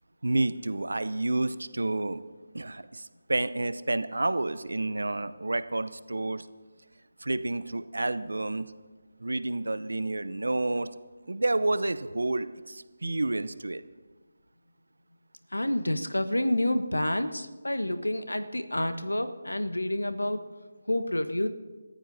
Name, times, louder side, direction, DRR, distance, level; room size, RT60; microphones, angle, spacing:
voice 1, 0.2-2.2 2.5-6.5 7.2-8.7 9.2-10.9 11.3-13.8, right 2 dB, 75° right, 13 dB, 0.7 m, -29 dB
voice 2, 15.5-20.4 20.9-21.5, left 1 dB, 90° left, 10 dB, 1.1 m, -28 dB
27.5 x 14.5 x 2.8 m, 1.3 s
figure-of-eight pair, 155°, 0 cm